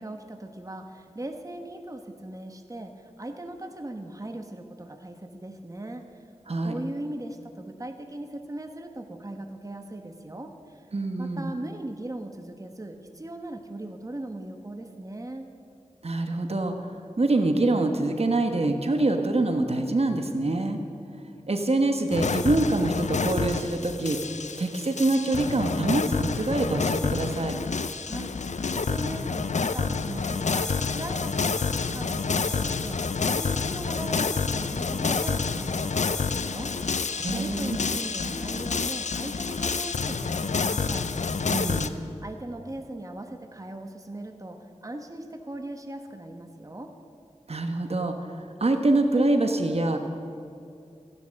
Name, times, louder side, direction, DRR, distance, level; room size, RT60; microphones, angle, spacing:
voice 1, 0.0-6.0 6.6-10.9 11.2-15.5 27.9-28.4 28.7-41.1 42.0-46.9, right 1 dB, 25° right, 5 dB, 1.2 m, -39 dB
voice 2, 10.9-11.5 16.0-20.8 21.5-24.2 24.6-27.6 37.2-37.8 41.5-42.0 47.5-50.0, right 2 dB, 55° right, 5 dB, 1.2 m, -25 dB
sound 1, 22.1-41.9, left 4 dB, 70° left, 0.6 m, -28 dB
15.0 x 11.0 x 6.5 m, 2.6 s
cardioid pair, 45°, 12 cm